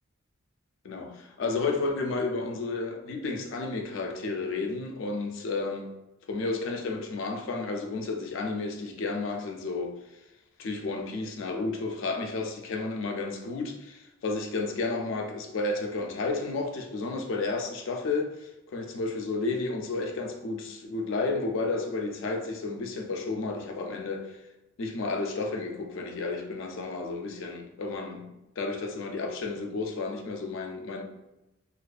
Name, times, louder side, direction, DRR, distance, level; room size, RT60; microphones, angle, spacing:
voice 1, 0.8-5.9 6.3-9.9 10.6-24.4 24.8-31.0, left 3 dB, 65° left, 0.4 m, -32 dB
2.4 x 2.2 x 2.4 m
head